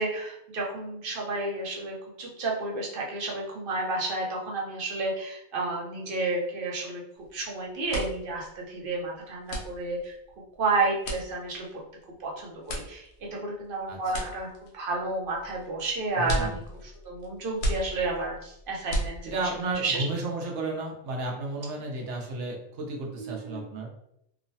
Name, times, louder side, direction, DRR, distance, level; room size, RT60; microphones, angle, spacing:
voice 1, 0.0-7.0 7.3-10.1 10.6-11.8 12.2-13.0 13.3-14.5 14.7-19.3 19.8-20.0 23.2-23.6, right 3 dB, 55° right, -1 dB, 0.8 m, -31 dB
sound 1, 7.2-7.4 7.7-19.7, right 1 dB, 85° left, 1.0 m, -36 dB
voice 2, 13.9-14.3 16.2-16.6 19.2-23.9, right 2 dB, 85° right, -1 dB, 1.0 m, -33 dB
3.0 x 2.0 x 2.6 m, 0.77 s
omnidirectional pair, 1.2 m